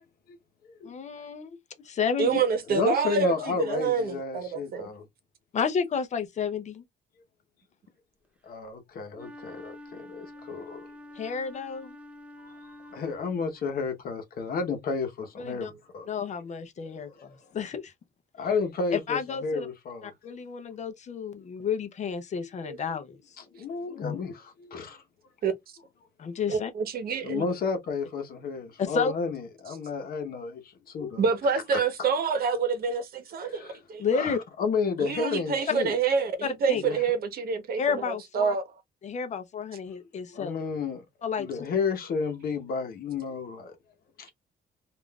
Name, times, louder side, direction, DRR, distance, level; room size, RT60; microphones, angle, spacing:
voice 1, 0.8-1.6 1.8-2.4 5.5-6.8 11.2-12.0 15.4-15.7 16.1-17.9 18.9-19.7 20.0-23.2 24.0-24.2 26.2-26.7 28.8-29.1 31.0-31.1 34.0-34.4 36.7-36.8 37.8-38.5 39.0-40.6 41.2-41.5, left 6 dB, 45° left, 0.6 m, -31 dB
voice 2, 2.2-4.9 22.6-22.8 25.4-25.5 26.5-27.4 31.2-34.1 35.0-38.6, right 5 dB, 60° right, 0.9 m, -27 dB
voice 3, 2.7-5.0 8.4-10.9 12.9-16.1 16.8-17.3 18.4-20.1 23.4-25.0 27.2-31.2 31.7-31.8 33.4-33.8 34.1-35.9 36.8-37.0 40.3-41.0 41.4-43.8 44.2-44.3, left 5 dB, 60° left, 0.9 m, -32 dB
Wind instrument woodwind instrument, 9.1-13.6, left 1 dB, 5° right, 0.4 m, -47 dB
3.6 x 2.4 x 2.2 m
cardioid pair, 150°, 17 cm